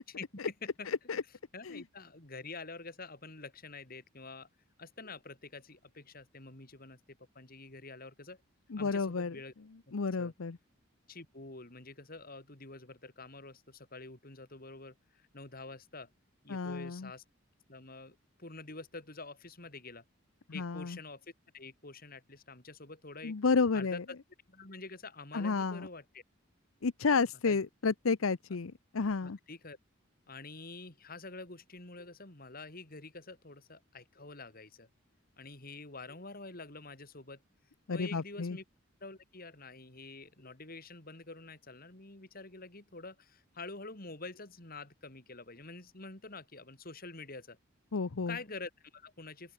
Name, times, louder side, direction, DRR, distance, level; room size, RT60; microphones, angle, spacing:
voice 1, 0.9-1.2 1.6-1.8 8.7-9.4 9.9-10.6 16.5-17.1 20.5-21.0 23.2-24.0 25.3-25.9 26.8-29.4 37.9-38.6 47.9-48.4, left 4 dB, 80° left, 0.7 m, -31 dB
voice 2, 1.5-4.5 4.8-7.0 7.4-8.4 8.8-9.5 10.2-10.3 11.1-16.1 16.4-17.2 17.7-20.0 20.5-21.2 21.5-23.4 23.7-24.0 24.5-26.2 27.5-27.6 29.2-29.8 30.3-34.9 35.4-37.4 37.9-38.6 39.0-47.6 48.3-49.5, left 3 dB, 45° left, 3.6 m, -47 dB
open air
head